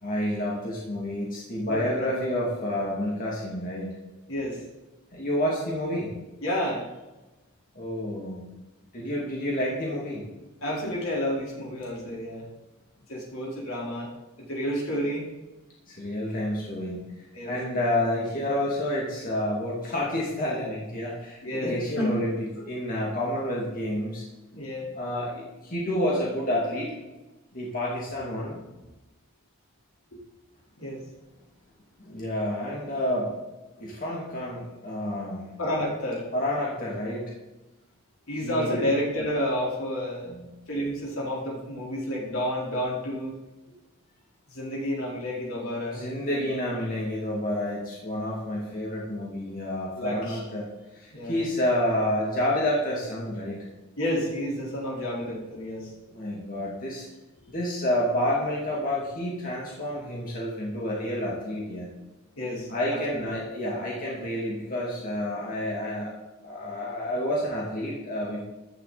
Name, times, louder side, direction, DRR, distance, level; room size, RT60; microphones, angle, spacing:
voice 1, 0.0-3.9 5.1-6.1 7.7-8.4 8.9-10.3 15.9-24.2 24.9-26.9 27.5-28.6 32.0-33.3 33.8-35.4 36.3-37.3 38.4-38.9 40.3-40.5 45.9-50.7 50.9-53.6 56.1-57.1 57.5-61.9 62.7-68.4, left 1 dB, 40° left, -4 dB, 2.6 m, -29 dB
voice 2, 1.7-2.1 4.3-4.6 6.4-6.8 10.6-12.5 13.1-14.1 14.4-15.3 17.3-17.5 21.4-22.1 24.5-24.9 30.8-31.0 35.6-36.3 38.3-40.3 40.7-43.4 44.5-46.4 49.9-50.4 51.1-51.5 54.0-55.9 62.4-63.2, equal, 75° left, -3 dB, 4.4 m, -30 dB
14.5 x 11.5 x 4.2 m, 1.1 s
head